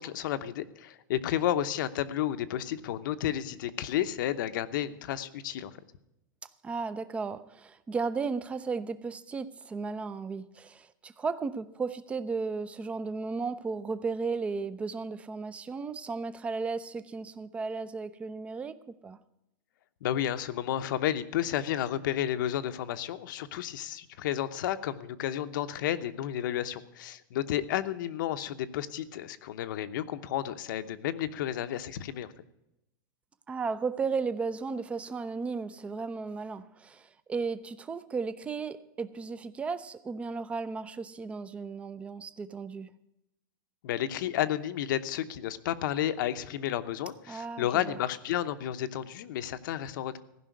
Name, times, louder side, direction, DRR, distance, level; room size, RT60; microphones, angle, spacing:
voice 1, 0.0-5.7 20.0-32.3 43.8-50.2, left 11 dB, 65° left, 0.8 m, -32 dB
voice 2, 6.6-18.8 19.0-19.2 33.5-42.9 47.3-48.0, right 4 dB, 10° right, 0.4 m, -35 dB
15.0 x 5.6 x 9.2 m
supercardioid pair, 160°, 11 cm